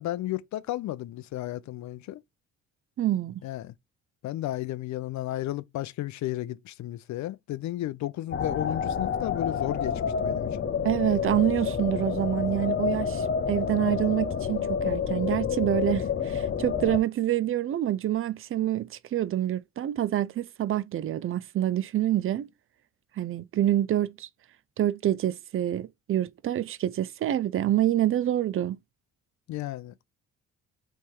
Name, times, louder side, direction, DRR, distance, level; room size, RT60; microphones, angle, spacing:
voice 1, 0.0-2.2 3.4-3.7 4.2-10.5 29.5-30.0, left 14 dB, 70° left, 0.5 m, -33 dB
voice 2, 3.0-3.4 10.8-22.5 23.2-24.3 24.8-28.8, right 12 dB, 45° right, 0.5 m, -27 dB
sound 1, 8.3-17.0, left 7 dB, 40° left, 0.8 m, -29 dB
3.4 x 3.2 x 4.5 m
cardioid pair, 90°, 30 cm